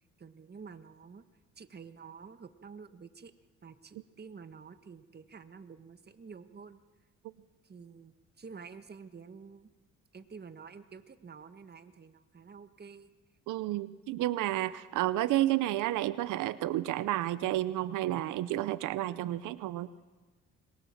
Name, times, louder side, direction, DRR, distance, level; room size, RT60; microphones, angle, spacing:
voice 1, 0.2-1.2 1.6-3.3 3.6-6.8 7.6-9.7 10.1-13.1, right 5 dB, 35° right, 9 dB, 1.6 m, -49 dB
voice 2, 13.5-19.9, right 15 dB, 85° right, 15 dB, 0.7 m, -31 dB
26.0 x 22.0 x 7.3 m, 1.3 s
cardioid pair, 90°, 30 cm